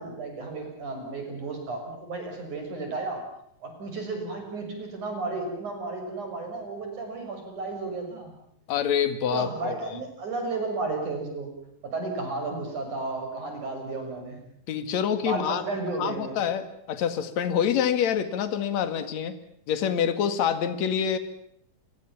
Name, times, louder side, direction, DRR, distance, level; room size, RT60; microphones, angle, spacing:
voice 1, 0.0-3.2 3.6-8.3 9.3-11.5 11.8-14.4 15.2-16.4, right 3 dB, 55° right, 4 dB, 8.0 m, -33 dB
voice 2, 8.7-9.7 14.7-15.6 16.0-19.4 19.7-21.2, left 8 dB, 55° left, 10 dB, 3.0 m, -26 dB
29.0 x 22.5 x 7.3 m, 0.71 s
omnidirectional pair, 4.2 m